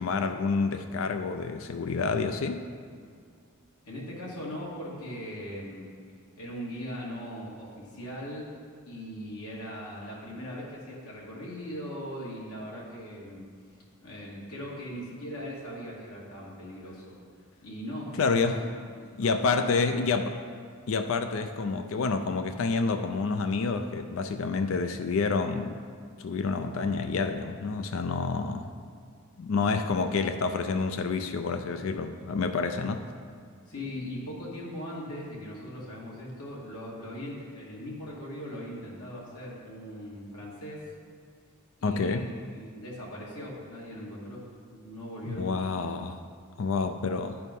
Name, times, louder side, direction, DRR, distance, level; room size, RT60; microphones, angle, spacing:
voice 1, 0.0-2.6 18.2-18.6 19.2-20.4 20.9-25.8 26.2-28.7 29.4-33.0 41.8-42.3 45.3-46.2 46.6-47.4, left 4 dB, 60° left, 8 dB, 0.4 m, -28 dB
voice 2, 3.8-5.9 6.4-8.5 8.8-13.5 14.0-17.2 17.6-20.1 33.7-40.9 41.8-44.4 44.7-45.7, equal, 85° left, -5 dB, 2.3 m, -40 dB
11.0 x 4.7 x 5.3 m, 2.1 s
head